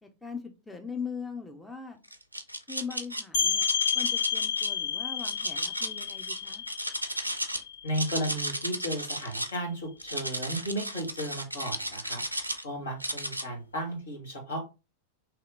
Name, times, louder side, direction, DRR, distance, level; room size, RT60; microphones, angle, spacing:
voice 1, 0.0-2.0 2.7-3.7 3.9-6.6, left 5 dB, 5° left, 4 dB, 0.5 m, -40 dB
sound 1, 2.1-3.2 3.6-4.7 5.2-7.6 7.9-9.6 10.0-12.6 13.0-13.4, right 1 dB, 85° right, 0.4 m, -34 dB
sound 2, 3.3-8.8, left 8 dB, 50° left, 1.0 m, -31 dB
voice 2, 7.8-12.2 12.6-14.6, right 1 dB, 70° left, 0 dB, 1.5 m, -34 dB
3.1 x 2.8 x 3.7 m, 0.29 s
figure-of-eight pair, 90°, 0 cm